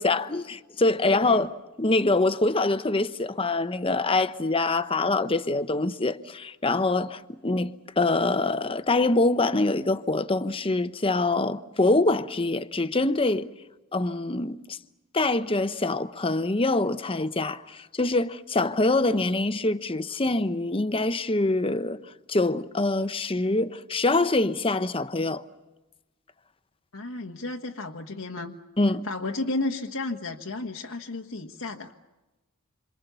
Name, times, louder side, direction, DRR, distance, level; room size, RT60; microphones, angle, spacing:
voice 1, 0.0-7.7 8.0-13.5 13.9-14.8 15.1-22.0 22.3-25.4 28.8-29.0, left 2 dB, 25° left, 0.9 m, -25 dB
voice 2, 1.0-1.4 26.9-28.5 29.0-31.9, left 2 dB, 90° left, 1.5 m, -33 dB
28.5 x 26.5 x 6.9 m
head